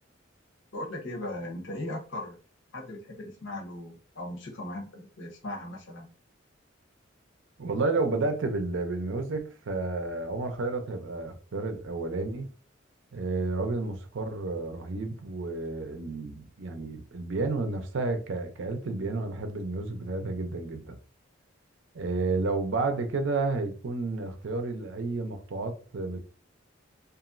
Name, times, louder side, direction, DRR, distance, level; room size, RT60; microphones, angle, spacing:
voice 1, 0.7-2.4 2.7-6.1, left 1 dB, 65° left, 0.8 m, -38 dB
voice 2, 7.6-12.5 13.1-21.0 21.9-26.2, right 3 dB, 65° right, 0.5 m, -31 dB
2.9 x 2.5 x 2.5 m
head